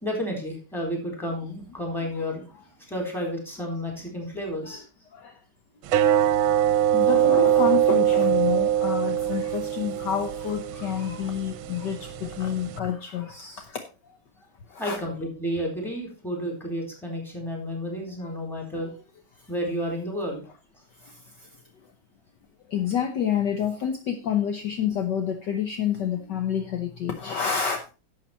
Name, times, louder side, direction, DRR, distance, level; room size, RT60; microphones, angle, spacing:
voice 1, 0.0-2.5 2.9-4.8 14.8-18.9 19.5-20.4, equal, ahead, 1 dB, 3.8 m, -31 dB
sound 1, 5.9-12.8, right 11 dB, 75° right, 1.4 m, -23 dB
voice 2, 6.9-13.8 14.7-15.0 22.7-27.8, left 8 dB, 60° left, 6 dB, 1.5 m, -28 dB
11.5 x 7.5 x 4.3 m, 0.33 s
omnidirectional pair, 2.3 m